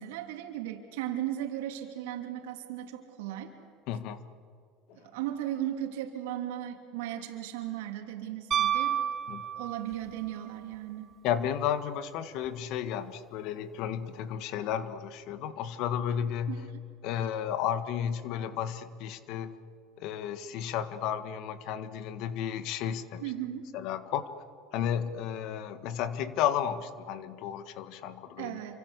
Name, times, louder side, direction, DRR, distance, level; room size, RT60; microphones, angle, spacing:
voice 1, 0.0-3.5 5.0-9.0 9.6-11.1 16.5-16.6 23.2-23.7 28.4-28.8, right 12 dB, 85° right, 4 dB, 3.1 m, -36 dB
voice 2, 3.9-4.2 5.0-5.1 9.3-9.4 11.2-16.7 17.0-19.5 20.0-23.3 23.7-24.3 24.7-28.6, left 9 dB, 60° left, 11 dB, 1.7 m, -33 dB
Piano, 8.5-10.1 12.4-12.5, right 10 dB, 35° right, 2.3 m, -29 dB
27.5 x 25.5 x 8.3 m, 2.2 s
supercardioid pair, 115°, 0 cm